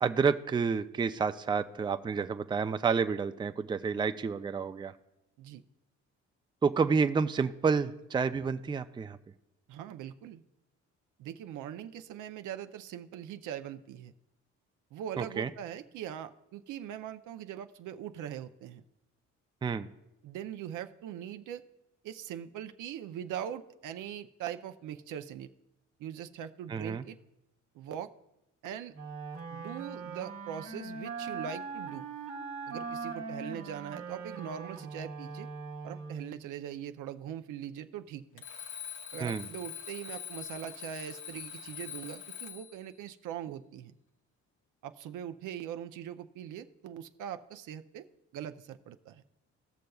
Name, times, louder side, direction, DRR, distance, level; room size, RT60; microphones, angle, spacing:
voice 1, 0.0-4.9 6.6-9.2 15.2-15.5 19.6-19.9 26.7-27.0 39.2-39.5, right 5 dB, 15° right, 10 dB, 0.4 m, -29 dB
voice 2, 9.7-10.4 11.2-14.1 14.9-18.8 20.2-21.6 22.0-25.5 26.0-27.2 27.7-28.1 28.6-28.9 29.5-32.1 32.7-35.5 35.8-38.4 39.1-43.9 44.8-48.1 48.3-49.2, right 10 dB, 85° right, 9 dB, 0.6 m, -41 dB
Wind instrument woodwind instrument, 28.9-36.4, right 4 dB, 45° right, 1.2 m, -41 dB
Alarm, 38.4-42.8, left 9 dB, 85° left, 1.2 m, -43 dB
18.0 x 6.5 x 2.3 m, 0.90 s
cardioid pair, 90°, 30 cm